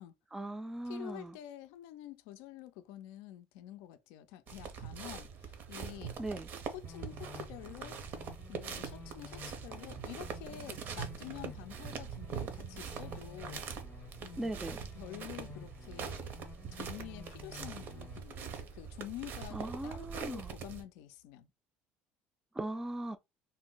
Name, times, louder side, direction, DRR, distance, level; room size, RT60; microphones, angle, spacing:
voice 1, 0.3-1.4 6.2-6.5 14.4-14.8 19.5-20.5 22.5-23.2, right 1 dB, 10° right, 0.3 m, -39 dB
voice 2, 0.8-6.2 6.7-8.0 8.5-13.7 14.2-14.7 15.0-16.4 16.7-21.5, left 13 dB, 85° left, 0.4 m, -48 dB
sound 1, 4.5-20.8, right 6 dB, 60° right, 0.7 m, -43 dB
sound 2, 6.8-18.2, left 6 dB, 35° left, 0.6 m, -53 dB
sound 3, 20.9-21.3, right 9 dB, 75° right, 1.0 m, -61 dB
2.6 x 2.0 x 3.7 m
supercardioid pair, 100°, 4 cm